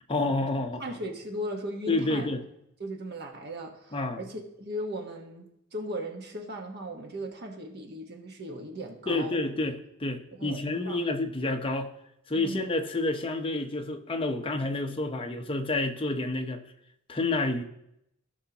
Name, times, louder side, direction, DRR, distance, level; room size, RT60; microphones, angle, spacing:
voice 1, 0.1-1.0 1.9-2.4 3.9-4.2 9.1-11.9 12.3-16.6 17.1-17.6, left 2 dB, 25° left, 5 dB, 0.8 m, -29 dB
voice 2, 0.8-2.3 2.8-9.4 10.4-11.0 12.3-12.7, equal, 55° right, 3 dB, 1.3 m, -37 dB
16.5 x 5.7 x 2.9 m, 0.79 s
head